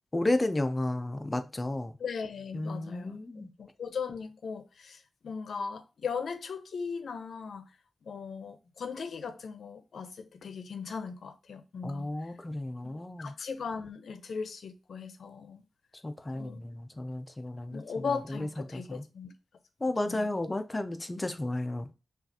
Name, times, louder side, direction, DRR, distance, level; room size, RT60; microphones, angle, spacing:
voice 1, 0.1-1.9 2.5-3.5 11.8-13.3 16.0-19.0 19.8-21.9, left 2 dB, 20° left, 0.4 m, -33 dB
voice 2, 2.0-7.6 8.0-12.3 12.8-15.6 16.3-16.6 17.7-19.3 20.0-20.3, left 5 dB, 80° left, 0.6 m, -38 dB
5.6 x 2.4 x 2.7 m
wide cardioid pair, 125°, 0 cm